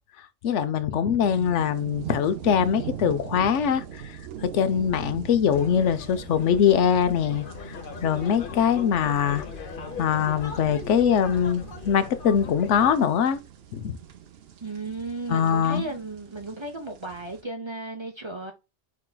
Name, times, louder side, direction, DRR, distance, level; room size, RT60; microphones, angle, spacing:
voice 1, 0.4-4.0 4.4-7.5 8.0-9.4 10.0-13.4 13.7-13.9 15.3-15.8, left 8 dB, 85° left, 0.9 m, -22 dB
sound 1, 1.2-17.4, right 9 dB, 65° right, 0.8 m, -41 dB
sound 2, 5.5-12.9, left 5 dB, 55° left, 0.8 m, -39 dB
voice 2, 14.6-18.5, right 2 dB, 30° right, 0.5 m, -35 dB
4.8 x 4.5 x 2.2 m
omnidirectional pair, 1.2 m